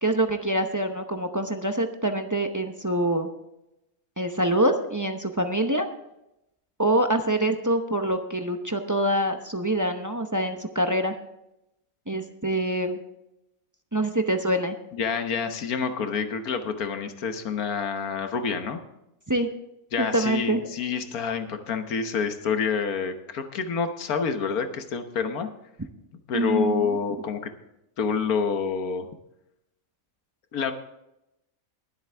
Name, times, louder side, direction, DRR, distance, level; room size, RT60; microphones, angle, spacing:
voice 1, 0.0-3.3 4.2-5.9 6.8-11.1 12.1-13.0 13.9-14.8 19.3-19.5 20.0-20.6 26.3-27.0, right 1 dB, 20° right, 5 dB, 0.6 m, -25 dB
voice 2, 14.9-18.8 19.9-25.5 26.3-27.5 28.0-29.1 30.5-30.7, left 5 dB, 80° left, 7 dB, 1.6 m, -28 dB
21.0 x 8.0 x 3.4 m, 0.87 s
omnidirectional pair, 1.5 m